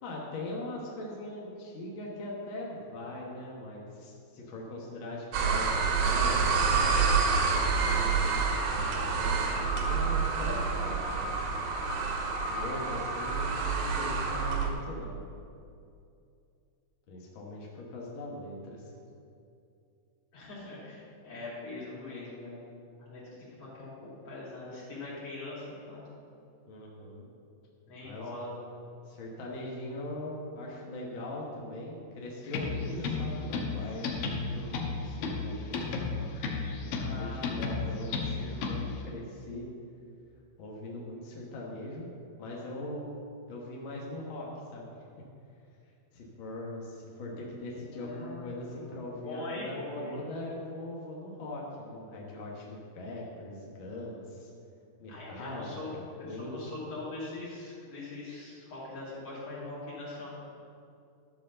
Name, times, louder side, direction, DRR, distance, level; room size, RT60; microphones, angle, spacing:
voice 1, 0.0-7.0 7.6-11.5 12.5-15.2 17.1-18.9 26.7-27.3 28.0-28.3 29.0-36.1 36.8-39.6 40.6-42.1 42.4-43.0 43.5-45.0 46.1-54.5 55.0-56.6, left 1 dB, 65° left, -3 dB, 1.2 m, -41 dB
sound 1, 5.3-14.7, right 5 dB, 90° right, 2.9 m, -28 dB
voice 2, 20.3-22.6 23.0-23.9 24.2-26.0 27.9-28.5 36.9-37.5 47.9-48.9 49.2-50.2 55.1-55.9 56.2-60.3, left 2 dB, 40° left, -7 dB, 3.5 m, -42 dB
sound 2, 32.5-39.0, left 4 dB, 80° left, 2.8 m, -33 dB
12.0 x 5.1 x 6.8 m, 2.5 s
omnidirectional pair, 4.1 m